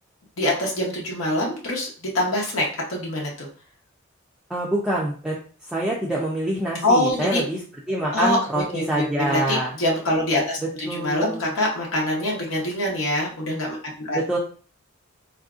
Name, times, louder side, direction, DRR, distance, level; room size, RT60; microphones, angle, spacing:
voice 1, 0.4-1.9 2.1-3.5 6.8-7.4 8.1-14.4, left 1 dB, 70° left, -3 dB, 0.9 m, -24 dB
voice 2, 4.5-5.4 5.7-7.6 7.9-9.7 10.9-11.4 14.1-14.4, right 1 dB, 5° right, -5 dB, 0.4 m, -25 dB
3.4 x 2.6 x 2.4 m, 0.40 s
head